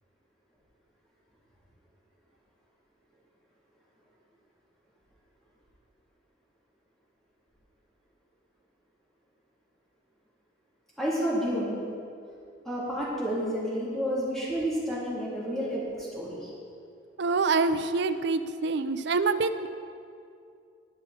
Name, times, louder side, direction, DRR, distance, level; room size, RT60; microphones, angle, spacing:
voice 1, 11.0-11.8 12.6-16.5, equal, ahead, -9 dB, 3.3 m, -30 dB
voice 2, 17.2-19.7, right 4 dB, 55° right, 11 dB, 0.5 m, -26 dB
20.0 x 6.7 x 4.3 m, 2.4 s
head